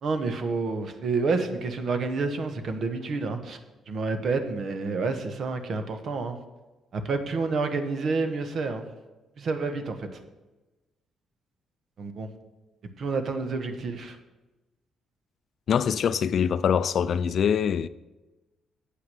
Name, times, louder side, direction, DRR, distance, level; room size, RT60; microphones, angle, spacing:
voice 1, 0.0-3.6 3.9-6.4 6.9-8.8 9.4-10.2 12.0-12.3 13.0-14.2, right 4 dB, 60° right, 1.1 m, -29 dB
voice 2, 15.7-17.9, left 7 dB, 60° left, 0.3 m, -24 dB
8.1 x 5.8 x 7.6 m
cardioid pair, 90°, 0 cm